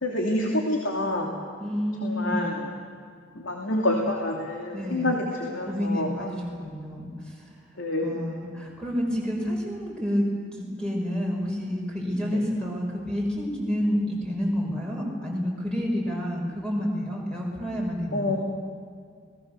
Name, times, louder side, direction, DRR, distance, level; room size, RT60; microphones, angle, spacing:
voice 1, 0.0-1.3 2.0-2.7 3.3-6.1 7.8-8.3 18.1-18.4, left 1 dB, 80° left, 0 dB, 2.8 m, -27 dB
voice 2, 1.6-2.5 4.7-5.2 5.6-7.5 8.0-10.2 10.5-18.4, equal, 5° left, -2 dB, 5.9 m, -29 dB
28.0 x 20.0 x 6.9 m, 2.1 s
head